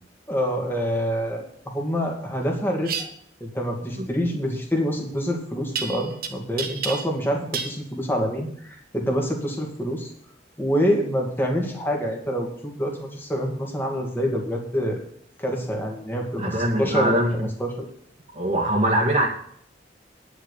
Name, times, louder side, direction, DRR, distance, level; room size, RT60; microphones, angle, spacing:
voice 1, 0.3-3.1 3.4-10.1 10.6-15.0 15.4-17.7, equal, 10° left, 0 dB, 2.4 m, -26 dB
sound 1, 2.8-3.1 5.8-6.3 6.6-7.2 7.5-7.8, right 6 dB, 55° right, 1.2 m, -29 dB
voice 2, 16.4-17.5 18.3-19.3, right 1 dB, 35° right, -3 dB, 2.0 m, -22 dB
10.0 x 6.3 x 8.4 m, 0.64 s
head